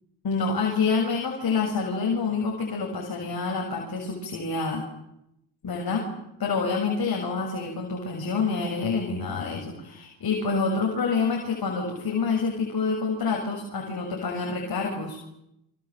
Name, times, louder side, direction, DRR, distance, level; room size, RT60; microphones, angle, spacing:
voice 1, 0.2-4.8 5.6-6.0 6.4-15.2, left 4 dB, 50° left, 1 dB, 6.9 m, -27 dB
27.5 x 26.5 x 7.8 m, 0.82 s
supercardioid pair, 70°, 47 cm